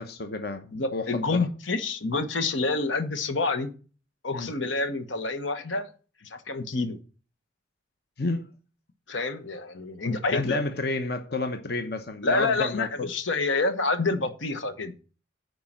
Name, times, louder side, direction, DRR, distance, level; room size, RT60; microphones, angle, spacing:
voice 1, 0.0-1.5 4.3-4.5 8.2-8.5 10.3-12.9, left 2 dB, 55° left, 0.9 m, -30 dB
voice 2, 0.7-3.7 4.2-5.9 6.2-7.0 9.1-10.6 12.2-14.9, left 3 dB, 80° left, 1.2 m, -28 dB
9.5 x 4.8 x 7.4 m
head